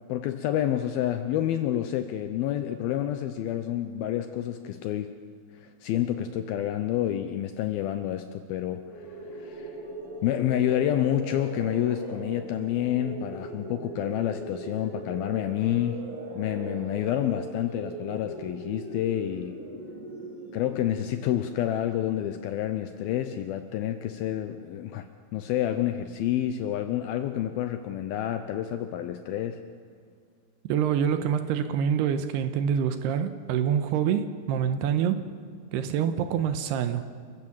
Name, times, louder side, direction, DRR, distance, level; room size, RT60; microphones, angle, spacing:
voice 1, 0.1-5.1 5.6-9.8 10.2-16.0 16.4-19.6 20.5-25.1 25.3-29.6, left 11 dB, 85° left, 9 dB, 2.2 m, -29 dB
sound 1, 8.9-21.7, right 2 dB, 45° right, 5.7 m, -40 dB
voice 2, 30.7-35.2 35.7-37.1, right 8 dB, 75° right, 10 dB, 2.6 m, -26 dB
28.0 x 15.5 x 7.3 m, 2.1 s
omnidirectional pair, 5.3 m